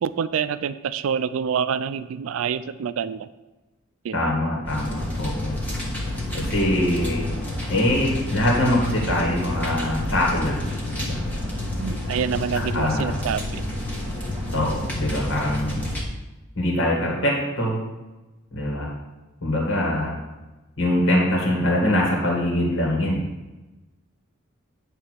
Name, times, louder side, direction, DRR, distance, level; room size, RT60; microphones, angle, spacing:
voice 1, 0.0-3.3 4.0-4.3 11.8-13.6, right 7 dB, 75° right, 13 dB, 0.3 m, -27 dB
voice 2, 4.1-5.6 6.3-7.2 7.7-11.2 12.7-13.2 14.5-15.8 16.6-17.8 18.5-18.9 19.4-20.2 20.8-23.2, left 1 dB, 65° left, -2 dB, 2.0 m, -23 dB
sound 1, 4.6-16.0, left 1 dB, 10° left, 1.3 m, -29 dB
9.3 x 3.3 x 6.4 m, 1.1 s
head